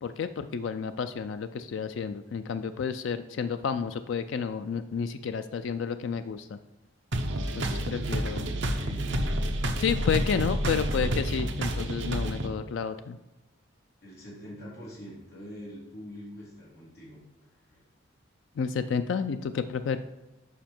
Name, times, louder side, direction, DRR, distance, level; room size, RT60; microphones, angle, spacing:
voice 1, 0.0-6.6 7.6-8.5 9.8-13.2 18.6-20.0, left 6 dB, 70° left, 10 dB, 0.3 m, -31 dB
sound 1, 7.1-12.5, right 1 dB, 65° right, 0.8 m, -29 dB
voice 2, 7.6-9.3 14.0-17.2 17.7-17.8, equal, 50° left, -8 dB, 2.8 m, -45 dB
7.3 x 5.4 x 4.4 m, 1.0 s
head